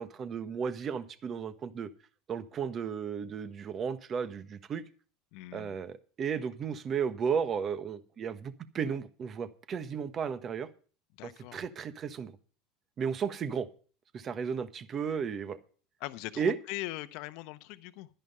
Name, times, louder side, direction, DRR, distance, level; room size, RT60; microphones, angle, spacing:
voice 1, 0.0-1.9 2.3-4.8 5.5-10.7 11.2-12.3 13.0-13.7 14.1-15.6 16.4-16.6, right 6 dB, 40° right, 12 dB, 1.3 m, -34 dB
voice 2, 5.3-5.8 11.2-11.6 16.0-18.1, left 18 dB, 65° left, 12 dB, 0.8 m, -41 dB
11.5 x 10.5 x 5.5 m, 0.41 s
hypercardioid pair, 85°, 0 cm